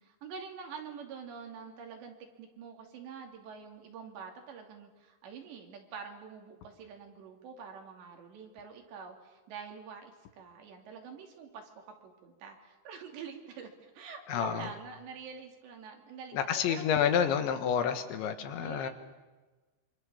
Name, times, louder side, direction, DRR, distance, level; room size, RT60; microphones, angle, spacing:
voice 1, 0.0-16.8 18.5-18.9, right 6 dB, 65° right, 3 dB, 4.8 m, -46 dB
voice 2, 14.3-14.7 16.3-18.9, left 8 dB, 75° left, 8 dB, 3.7 m, -29 dB
27.0 x 25.0 x 7.2 m, 1.2 s
omnidirectional pair, 5.5 m